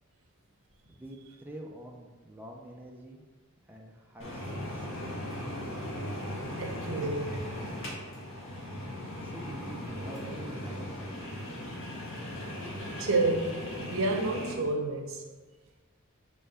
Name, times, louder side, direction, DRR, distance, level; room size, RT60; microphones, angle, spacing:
voice 1, 0.9-3.2 3.6-5.4 9.2-11.7, right 1 dB, 10° right, 0.5 m, -47 dB
sound 1, 4.2-14.5, equal, 65° left, 1.7 m, -38 dB
voice 2, 6.6-7.4 12.7-15.3, right 2 dB, 70° right, 0.8 m, -30 dB
5.2 x 3.3 x 5.5 m
head